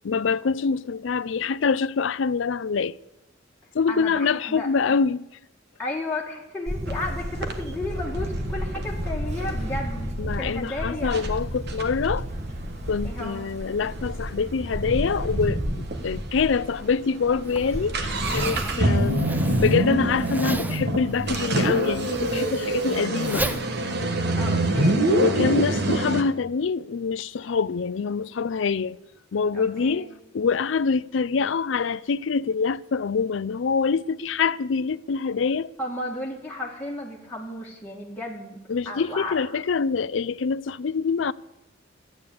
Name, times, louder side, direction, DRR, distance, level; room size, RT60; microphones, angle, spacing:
voice 1, 0.0-2.9 3.7-5.2 10.2-12.3 12.9-23.5 25.1-29.0 29.3-30.1 30.3-35.7 38.7-41.3, left 5 dB, 70° left, 0.4 m, -25 dB
voice 2, 3.9-5.0 5.8-11.3 13.0-13.4 18.7-19.0 24.4-25.1 29.5-30.1 35.8-39.4, left 2 dB, 10° left, 2.0 m, -34 dB
Camera, 6.7-21.4, equal, 35° right, 1.6 m, -32 dB
sound 1, 6.9-7.0 7.4-10.1 10.7-10.8 11.1-11.3 11.7-15.4 15.6-15.7 15.9-16.0 16.6-16.8 17.1-26.2, right 1 dB, 60° right, 1.4 m, -26 dB
Zipper (clothing), 17.4-24.8, right 1 dB, 10° right, 0.6 m, -34 dB
12.5 x 9.2 x 8.6 m
head